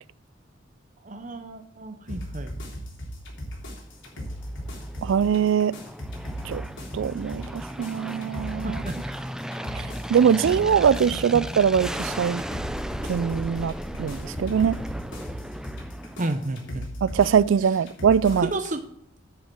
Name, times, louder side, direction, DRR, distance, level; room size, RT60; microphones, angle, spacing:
voice 1, 1.0-2.5 8.6-9.3 16.2-16.9 18.3-18.8, right 2 dB, 40° right, 0.8 m, -32 dB
sound 1, 2.1-18.7, equal, 75° left, 3.4 m, -37 dB
Aircraft, 4.0-16.8, equal, 5° right, 0.4 m, -36 dB
voice 2, 5.0-5.8 6.4-6.6 6.9-8.8 9.7-9.8 10.1-12.4 13.1-13.7 14.0-14.8 17.0-18.5, right 7 dB, 80° right, 0.3 m, -22 dB
10.0 x 5.6 x 7.6 m
head